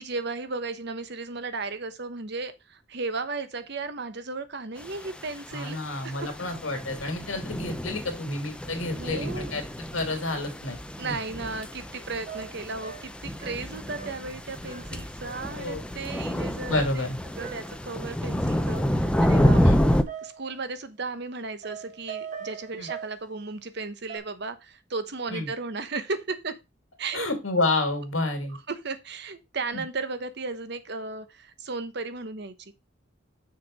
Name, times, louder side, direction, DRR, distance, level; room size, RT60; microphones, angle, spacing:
voice 1, 0.0-6.3 8.9-9.5 11.0-17.1 17.4-26.6 27.0-27.3 28.7-32.7, right 3 dB, 60° right, 1.0 m, -35 dB
sound 1, 4.8-5.4 5.8-20.0, equal, 5° left, 0.6 m, -28 dB
voice 2, 5.5-9.6 9.9-11.1 15.6-15.8 16.7-17.2 19.6-19.8 22.8-22.9 25.3-25.5 27.1-28.6 29.7-29.8, left 2 dB, 90° left, 2.5 m, -29 dB
sound 2, 11.9-12.0 12.3-14.4 14.7-15.0 15.2-15.6 16.7-17.8 19.4-20.6 21.6-23.2 24.1-24.2, right 7 dB, 40° right, 1.6 m, -41 dB
6.4 x 5.5 x 5.2 m
head